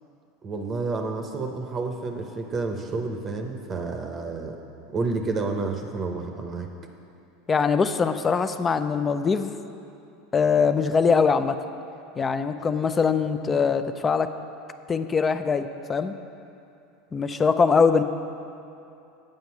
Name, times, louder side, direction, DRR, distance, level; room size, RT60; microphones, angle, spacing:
voice 1, 0.4-4.6 4.9-6.7, right 3 dB, 30° right, 4 dB, 0.7 m, -30 dB
voice 2, 7.5-9.5 10.3-11.6 12.2-14.3 14.9-16.1 17.1-18.0, left 5 dB, 25° left, 10 dB, 0.4 m, -22 dB
7.7 x 5.3 x 7.1 m, 2.7 s
hypercardioid pair, 100°, 0 cm